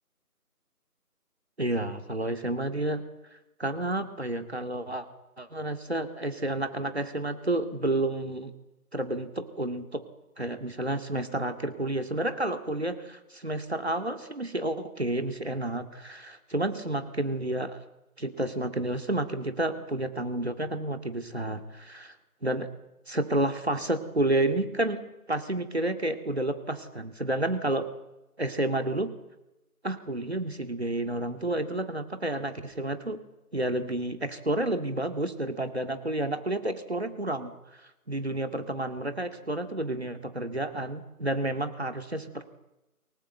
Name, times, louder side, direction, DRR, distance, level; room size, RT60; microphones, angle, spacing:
voice 1, 1.6-3.0 3.6-5.1 5.4-8.5 8.9-10.0 10.4-17.8 18.2-22.2 22.4-22.7 23.1-25.0 25.3-27.9 28.4-29.1 29.8-33.2 33.5-37.5 38.1-42.5, right 1 dB, 45° right, 7 dB, 2.2 m, -30 dB
23.5 x 18.0 x 8.0 m, 0.98 s
figure-of-eight pair, 175°, 46 cm